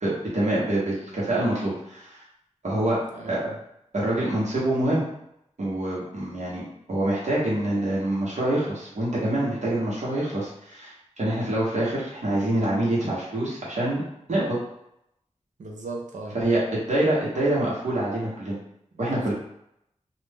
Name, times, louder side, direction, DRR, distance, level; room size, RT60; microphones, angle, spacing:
voice 1, 0.0-2.2 2.6-3.0 3.3-3.5 3.9-5.0 5.6-14.0 14.3-14.6 16.3-18.6 19.0-19.3, right 1 dB, 65° right, -6 dB, 1.0 m, -26 dB
voice 2, 3.1-3.6 15.6-16.4 19.0-19.3, right 2 dB, 85° right, 0 dB, 0.6 m, -37 dB
2.5 x 2.1 x 3.4 m, 0.78 s
wide cardioid pair, 75°, 12 cm